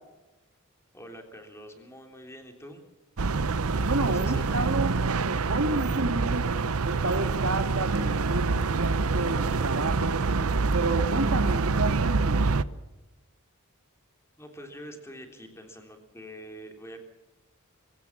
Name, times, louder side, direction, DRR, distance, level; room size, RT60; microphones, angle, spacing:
voice 1, 0.9-2.8 3.7-4.6 14.4-17.0, equal, 10° left, 4 dB, 3.4 m, -45 dB
sound 1, 3.2-12.6, right 4 dB, 90° right, 0.8 m, -26 dB
voice 2, 3.8-5.0 5.5-6.6 6.8-10.3 10.7-12.5, right 2 dB, 75° right, 8 dB, 2.1 m, -30 dB
24.0 x 16.0 x 7.3 m, 1.1 s
head